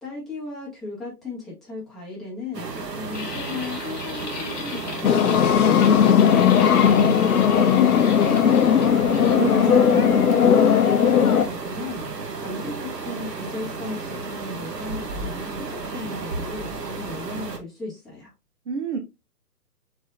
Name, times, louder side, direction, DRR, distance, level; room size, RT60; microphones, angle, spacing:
voice 1, 0.0-5.4 9.5-12.1 12.3-18.3, left 3 dB, ahead, 1.5 m, -36 dB
sound 1, 2.5-17.6, right 4 dB, 90° right, 1.2 m, -33 dB
sound 2, 3.1-9.4, left 5 dB, 25° left, 1.0 m, -37 dB
sound 3, 5.0-11.4, left 8 dB, 65° left, 0.6 m, -17 dB
voice 2, 9.0-10.4 18.7-19.0, right 6 dB, 45° right, 0.8 m, -30 dB
4.8 x 4.2 x 2.6 m
figure-of-eight pair, 140°, 47 cm